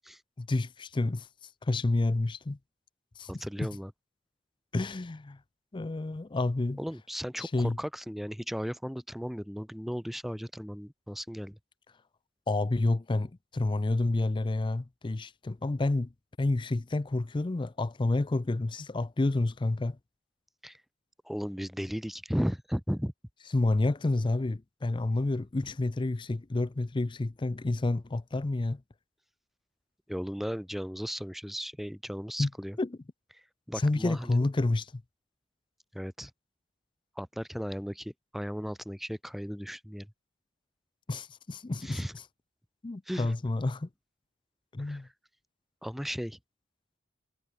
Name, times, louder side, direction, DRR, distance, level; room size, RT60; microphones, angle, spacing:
voice 1, 0.4-1.3 1.6-2.6 3.2-3.7 4.7-5.4 5.7-6.8 7.4-7.8 12.5-16.1 16.4-20.0 23.5-28.8 32.4-32.5 32.8-33.0 33.8-35.0 41.1-42.1 42.8-43.9 44.7-45.1, left 2 dB, 25° left, 0.5 m, -29 dB
voice 2, 3.3-3.9 6.8-11.6 20.6-20.8 21.2-23.1 30.1-32.8 33.7-34.4 35.9-36.3 37.2-40.1 41.8-42.1 43.1-43.3 44.8-45.0 45.8-46.4, equal, ahead, 0.8 m, -35 dB
head